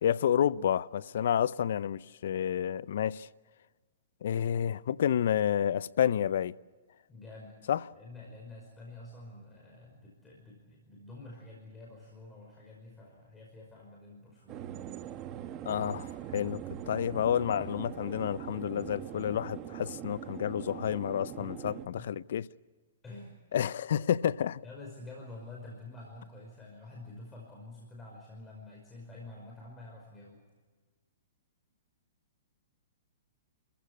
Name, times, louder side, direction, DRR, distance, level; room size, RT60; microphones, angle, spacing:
voice 1, 0.0-3.3 4.2-6.5 7.7-7.8 15.7-16.6 16.9-21.7 22.1-22.4 23.5-24.6, left 9 dB, 65° left, 0.6 m, -29 dB
voice 2, 7.1-7.5 7.9-15.1 21.4-22.1 23.0-23.4 24.6-30.4, left 2 dB, 15° left, 5.4 m, -48 dB
sound 1, 14.5-21.9, right 11 dB, 30° right, 1.1 m, -42 dB
30.0 x 15.0 x 8.6 m
hypercardioid pair, 140°, 0 cm